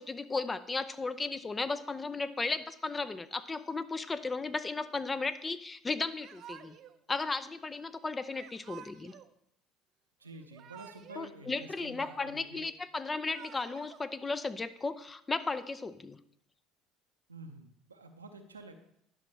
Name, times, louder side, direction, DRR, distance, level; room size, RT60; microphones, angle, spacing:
voice 1, 0.0-6.8 7.1-9.1 11.2-16.2, left 3 dB, 20° left, 14 dB, 0.5 m, -35 dB
Yell / Crying sobbing, 6.2-7.0 8.3-9.3 10.3-11.3 11.6-12.5 13.1-14.0, right 10 dB, 50° right, 0.5 m, -51 dB
voice 2, 10.2-12.7 17.3-18.7, right 2 dB, 90° right, 6 dB, 0.7 m, -49 dB
10.5 x 6.1 x 3.2 m, 0.74 s
figure-of-eight pair, 65°, 0 cm